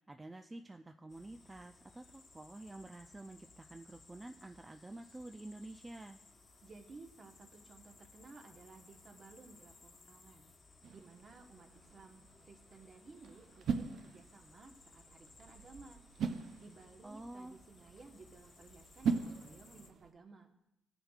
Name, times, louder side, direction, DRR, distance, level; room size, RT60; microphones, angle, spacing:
voice 1, 0.0-6.2 17.0-17.6, right 2 dB, 15° right, 5 dB, 0.4 m, -49 dB
sound 1, 1.1-19.9, left 3 dB, 40° left, 1.2 m, -62 dB
voice 2, 6.6-10.5 10.9-16.0 16.6-20.5, right 3 dB, 40° right, 4 dB, 1.2 m, -56 dB
sound 2, 10.8-20.1, right 5 dB, 65° right, 0.6 m, -42 dB
17.0 x 6.8 x 2.4 m, 0.86 s
cardioid pair, 90°, 0 cm